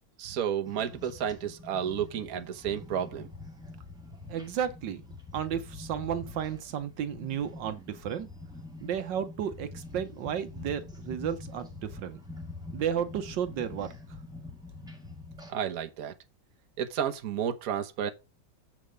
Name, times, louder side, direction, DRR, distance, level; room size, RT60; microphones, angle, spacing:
voice 1, 0.2-3.3 15.5-16.1 16.8-18.1, right 9 dB, 55° right, 1.4 m, -31 dB
sound 1, 0.6-15.5, left 2 dB, ahead, 2.4 m, -45 dB
voice 2, 4.3-5.0 5.3-8.3 8.8-12.2 12.7-13.9, right 9 dB, 75° right, 1.6 m, -33 dB
7.6 x 5.2 x 5.2 m
omnidirectional pair, 2.0 m